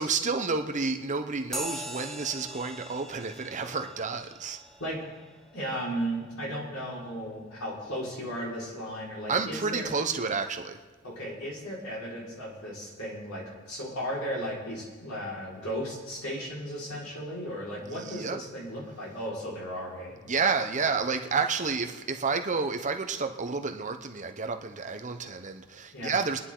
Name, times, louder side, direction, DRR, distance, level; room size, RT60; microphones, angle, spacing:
voice 1, 0.0-4.6 9.3-10.8 17.8-18.4 20.3-26.4, right 4 dB, 35° right, 6 dB, 0.9 m, -30 dB
sound 1, 1.5-9.4, right 1 dB, ahead, 0.8 m, -44 dB
voice 2, 5.5-9.9 11.0-20.2 25.9-26.1, equal, 75° left, -5 dB, 4.9 m, -35 dB
25.5 x 10.0 x 3.9 m, 1.3 s
head